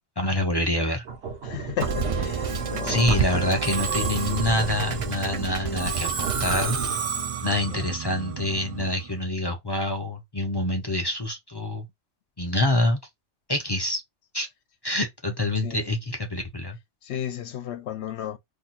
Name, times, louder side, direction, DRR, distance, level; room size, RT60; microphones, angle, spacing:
voice 1, 0.2-1.0 2.8-6.8 7.4-11.9 12.4-13.0 13.5-14.0 14.3-14.5 14.8-16.8, left 1 dB, 30° left, 0.5 m, -26 dB
sound 1, 1.0-7.2, right 5 dB, 75° right, 1.1 m, -36 dB
voice 2, 1.4-3.4 7.7-7.8 15.6-15.9 17.0-18.4, left 10 dB, 75° left, 0.8 m, -34 dB
Musical instrument, 1.8-9.1, right 6 dB, 50° right, 0.4 m, -29 dB
2.7 x 2.3 x 4.1 m
omnidirectional pair, 1.2 m